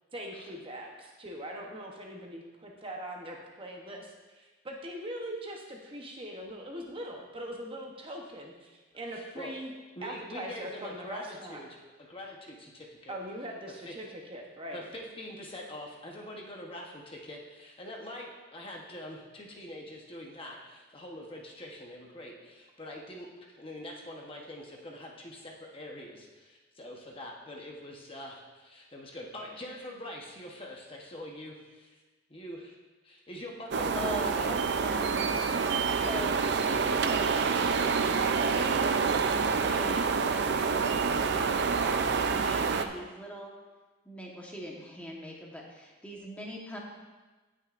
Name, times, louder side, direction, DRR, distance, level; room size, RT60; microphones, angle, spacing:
voice 1, 0.1-9.7 10.0-11.6 13.1-14.8, right 1 dB, 25° right, 0 dB, 0.9 m, -41 dB
voice 2, 9.1-9.5 10.0-11.7 12.1-13.2 13.8-14.0 14.7-32.0 32.3-32.7 33.0-34.6, left 1 dB, 25° left, -1 dB, 1.0 m, -44 dB
sound 1, 33.7-42.9, right 5 dB, 55° right, 0.5 m, -27 dB
voice 3, 33.9-37.7 38.0-43.5 44.0-46.8, equal, 5° left, -2 dB, 1.2 m, -42 dB
17.0 x 6.4 x 2.5 m, 1.3 s
head